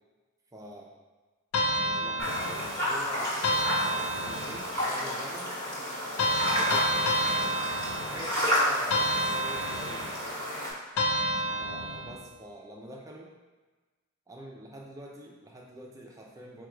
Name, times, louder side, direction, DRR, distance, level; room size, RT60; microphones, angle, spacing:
voice 1, 0.5-0.9 1.8-3.4 3.7-5.6 6.5-7.6 8.1-10.2 11.6-13.3 14.3-16.7, right 1 dB, 15° right, -1 dB, 0.4 m, -45 dB
sound 1, 1.5-2.9 3.4-4.8 6.2-8.4 8.9-10.2 11.0-12.3, equal, 85° left, 0.5 m, -29 dB
sound 2, 2.2-10.7, equal, 15° left, 1.3 m, -31 dB
4.5 x 2.3 x 4.8 m, 1.3 s
head